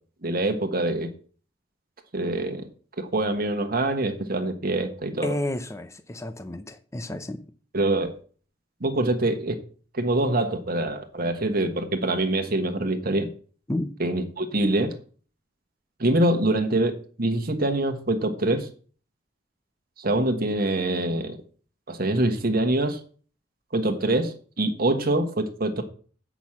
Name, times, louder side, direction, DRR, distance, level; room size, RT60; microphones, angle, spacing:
voice 1, 0.2-1.1 2.1-2.6 3.0-5.3 7.7-8.1 8.8-9.6 9.9-13.3 14.0-14.9 16.0-18.7 20.0-21.4 21.9-23.0 23.7-25.8, right 2 dB, 55° right, 1.4 m, -25 dB
voice 2, 5.2-7.4 13.7-13.9, left 1 dB, 15° left, 0.6 m, -31 dB
8.3 x 6.1 x 7.2 m
head